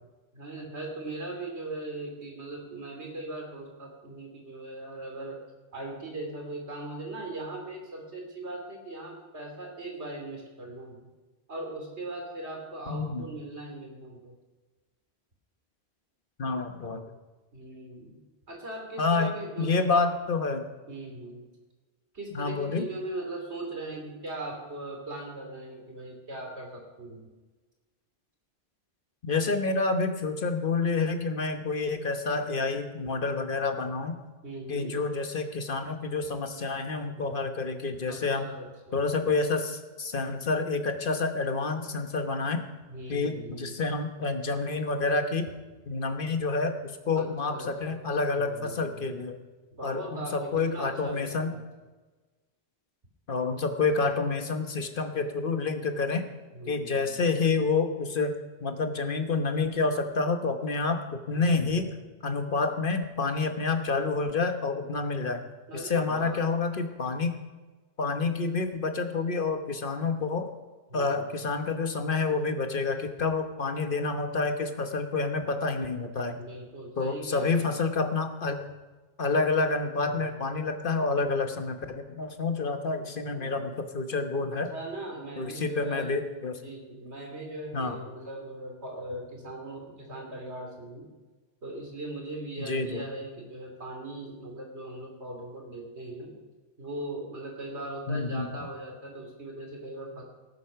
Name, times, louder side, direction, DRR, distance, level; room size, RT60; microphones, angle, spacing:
voice 1, 0.3-5.4 5.7-11.1 11.5-14.3 17.5-18.2 18.5-20.0 20.9-21.4 22.1-27.3 34.4-34.9 38.1-39.1 42.9-43.8 47.2-48.1 48.3-49.1 49.7-51.7 56.5-57.2 61.3-62.0 65.7-66.4 70.9-71.5 76.3-77.8 80.0-80.3 83.2-83.9 84.5-86.2 86.5-91.1 91.6-96.3 96.8-100.2, right 2 dB, 90° right, 1 dB, 3.3 m, -39 dB
voice 2, 12.9-13.3 16.4-17.1 19.0-20.6 22.3-22.9 29.2-34.2 34.7-38.4 38.9-42.6 43.1-45.5 45.9-49.4 49.8-51.5 53.3-56.2 56.7-58.3 58.6-61.9 62.2-65.4 65.7-67.4 68.0-70.5 70.9-76.4 77.0-78.6 79.2-84.7 85.4-86.6 87.7-88.0 92.6-93.0 98.1-98.5, left 4 dB, 55° left, 7 dB, 1.3 m, -28 dB
18.5 x 8.4 x 5.8 m, 1.2 s
omnidirectional pair, 1.1 m